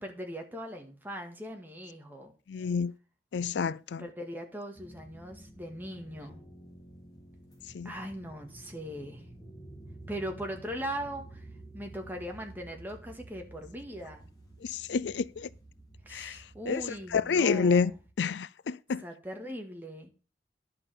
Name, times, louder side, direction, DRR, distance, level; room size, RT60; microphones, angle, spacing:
voice 1, 0.0-2.3 4.0-6.4 7.8-9.2 10.1-11.5 11.7-14.3 16.1-18.0 19.0-20.1, equal, 10° right, 1.9 m, -40 dB
voice 2, 2.5-2.9 3.3-4.0 7.7-7.9 14.6-15.5 16.1-16.4 16.7-16.8 17.1-17.9 18.2-19.0, left 5 dB, 75° left, 0.4 m, -28 dB
sound 1, 4.7-18.1, right 1 dB, 20° left, 3.1 m, -51 dB
11.0 x 5.6 x 6.9 m
head